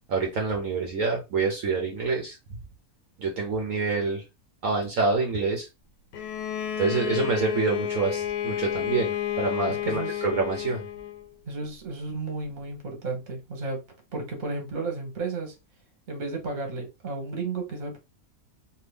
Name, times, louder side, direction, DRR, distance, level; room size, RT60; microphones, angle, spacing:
voice 1, 0.1-2.4 3.2-4.2 4.6-5.7 6.8-10.8, right 4 dB, 65° right, 1.0 m, -27 dB
Bowed string instrument, 6.1-11.3, left 10 dB, 85° left, 1.2 m, -30 dB
voice 2, 9.7-10.2 11.5-13.8 14.1-15.5 16.1-18.0, right 3 dB, 35° right, 1.1 m, -33 dB
2.7 x 2.6 x 3.3 m
omnidirectional pair, 1.6 m